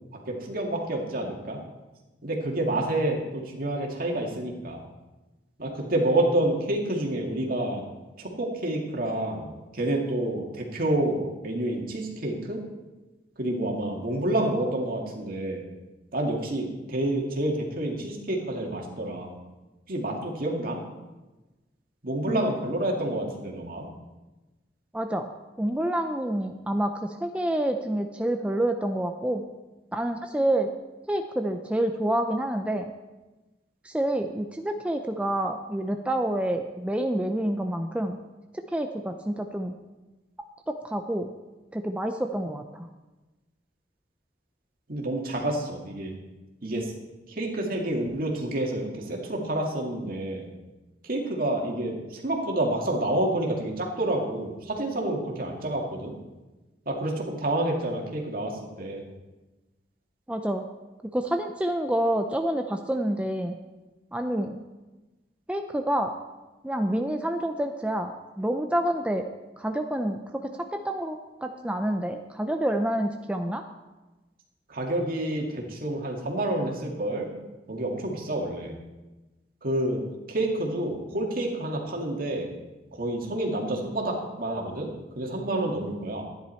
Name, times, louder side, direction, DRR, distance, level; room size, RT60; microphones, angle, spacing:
voice 1, 0.3-1.6 2.2-4.8 5.6-7.8 8.2-12.6 13.4-15.6 16.1-19.3 19.9-20.8 22.0-23.9 44.9-46.1 46.6-46.9 47.3-50.5 51.0-56.2 56.9-59.0 74.7-77.3 77.7-78.7 79.6-82.5 82.9-86.2, right 1 dB, 55° right, 0 dB, 2.1 m, -28 dB
voice 2, 24.9-25.3 25.6-29.4 29.9-30.7 31.1-32.9 33.8-38.2 38.7-39.7 40.7-41.3 41.7-42.9 60.3-60.6 61.1-63.6 64.1-64.6 65.5-66.1 66.6-69.3 69.6-73.6, right 1 dB, 5° right, 5 dB, 0.5 m, -28 dB
13.0 x 10.5 x 4.4 m, 1.1 s
head